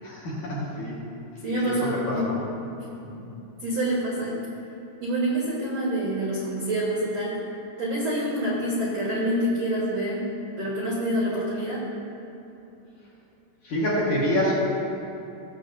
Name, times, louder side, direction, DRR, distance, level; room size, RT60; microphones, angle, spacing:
voice 1, 0.0-1.0 1.6-2.4 3.1-3.2 13.6-14.5, equal, 55° left, -7 dB, 2.3 m, -27 dB
voice 2, 1.4-2.4 3.6-4.4 5.0-7.4 7.8-10.2 10.6-11.8, right 1 dB, 75° right, -6 dB, 1.5 m, -26 dB
18.5 x 7.9 x 2.8 m, 3.0 s
omnidirectional pair, 5.7 m